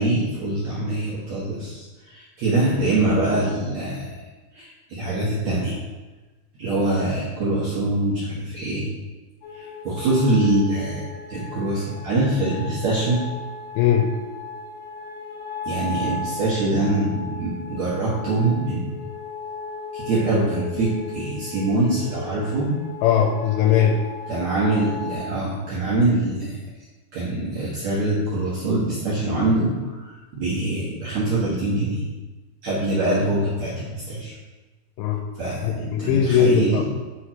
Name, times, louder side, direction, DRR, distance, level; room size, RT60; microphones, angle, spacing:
voice 1, 0.0-4.2 4.5-5.8 6.6-8.9 9.5-11.0 11.3-13.2 15.6-18.9 19.9-22.7 24.3-26.6 27.1-32.1 32.6-34.3 35.3-36.8, right 2 dB, 85° right, -8 dB, 1.5 m, -24 dB
sound 1, 9.4-25.2, left 4 dB, 60° left, 2.5 m, -36 dB
voice 2, 13.8-14.1 23.0-24.0 35.0-35.2 35.6-36.8, left 8 dB, 85° left, 1 dB, 3.2 m, -19 dB
7.0 x 4.5 x 5.1 m, 1.2 s
omnidirectional pair, 5.6 m